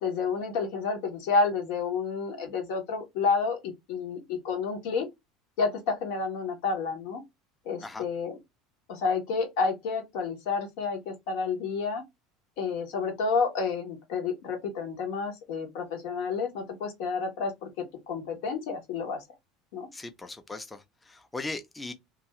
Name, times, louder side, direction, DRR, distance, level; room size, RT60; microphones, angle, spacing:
voice 1, 0.0-5.1 5.6-7.2 7.6-8.3 8.9-12.0 12.6-17.7 18.1-19.2 19.7-19.9, left 4 dB, 60° left, 1.0 m, -30 dB
voice 2, 19.9-21.9, left 2 dB, 15° left, 0.6 m, -39 dB
2.6 x 2.4 x 3.1 m
figure-of-eight pair, 70°, 0 cm